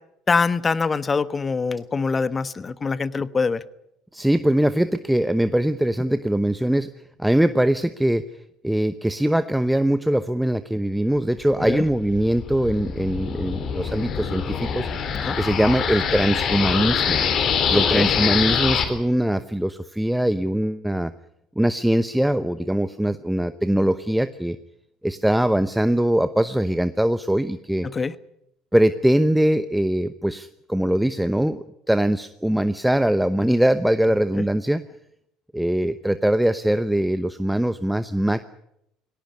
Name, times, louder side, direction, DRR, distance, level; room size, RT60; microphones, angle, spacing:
voice 1, 0.3-3.6 11.6-11.8 15.2-15.4 17.9-18.1 27.8-28.1, left 4 dB, 30° left, 16 dB, 1.2 m, -24 dB
voice 2, 4.1-6.9 7.2-8.2 8.6-14.9 15.3-17.2 17.7-21.1 21.6-24.6 25.0-27.9 28.7-34.8 35.5-38.5, right 1 dB, 5° right, 12 dB, 0.9 m, -22 dB
sound 1, 11.5-18.8, left 7 dB, 50° left, 3.5 m, -24 dB
19.0 x 18.0 x 9.7 m, 0.78 s
hypercardioid pair, 70°, 0 cm